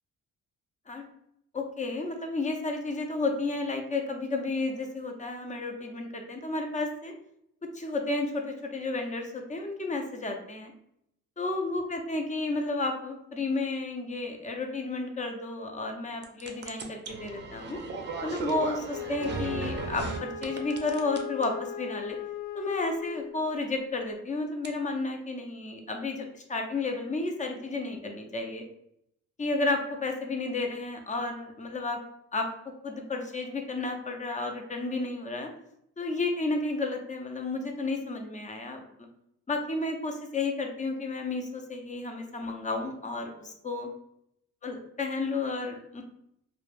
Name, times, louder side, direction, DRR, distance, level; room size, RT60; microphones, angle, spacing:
voice 1, 1.5-7.1 7.7-10.7 11.4-17.8 18.2-22.2 22.5-28.6 29.4-32.0 32.3-32.5 32.8-35.5 36.0-38.8 39.5-43.9 44.6-46.0, left 3 dB, 25° left, 3 dB, 0.5 m, -32 dB
sound 1, 16.2-20.2 20.4-21.4 24.6-24.7, right 3 dB, 35° right, 0.5 m, -35 dB
Wind instrument woodwind instrument, 18.9-23.5, left 5 dB, 75° left, 0.5 m, -38 dB
2.3 x 2.1 x 3.2 m, 0.75 s
cardioid pair, 90°, 30 cm